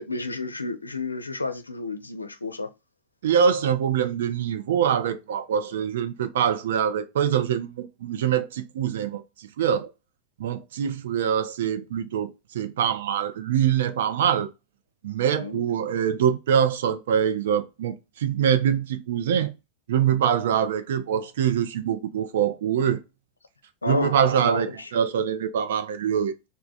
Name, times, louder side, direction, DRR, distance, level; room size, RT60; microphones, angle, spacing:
voice 1, 0.0-2.7 15.4-15.6 23.8-24.9, left 3 dB, 80° left, 0.5 m, -31 dB
voice 2, 3.2-9.9 10.4-14.5 15.0-19.5 19.9-23.0 23.9-26.3, right 8 dB, 60° right, 0.5 m, -24 dB
3.3 x 2.2 x 3.9 m
figure-of-eight pair, 90°, 0 cm